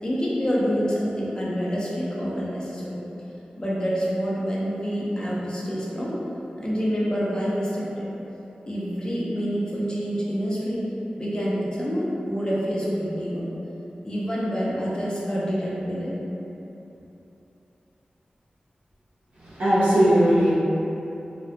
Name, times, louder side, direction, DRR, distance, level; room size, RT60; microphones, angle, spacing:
voice 1, 0.0-3.0 3.6-6.2 6.6-8.1 8.7-10.9 11.2-13.5 14.0-16.2, equal, 25° left, -7 dB, 0.6 m, -27 dB
voice 2, 19.5-20.5, equal, 85° right, -16 dB, 0.7 m, -18 dB
2.3 x 2.1 x 2.8 m, 3.0 s
cardioid pair, 50°, 3 cm